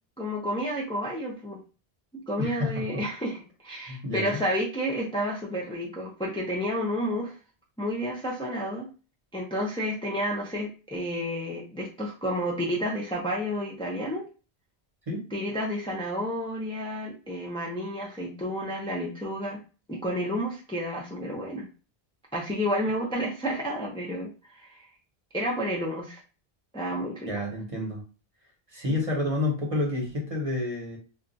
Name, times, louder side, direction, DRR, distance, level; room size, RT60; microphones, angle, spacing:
voice 1, 0.2-1.6 2.3-7.4 7.8-8.9 9.3-14.2 15.3-19.6 19.9-21.7 22.3-24.9 25.3-26.2 26.7-27.3 27.6-27.7 28.8-28.9, equal, 5° left, -3 dB, 0.4 m, -31 dB
voice 2, 2.4-3.0 3.9-4.4 15.1-15.2 27.2-28.0 28.7-31.0, left 2 dB, 35° right, -1 dB, 0.9 m, -29 dB
2.3 x 2.2 x 3.9 m, 0.34 s
omnidirectional pair, 1.1 m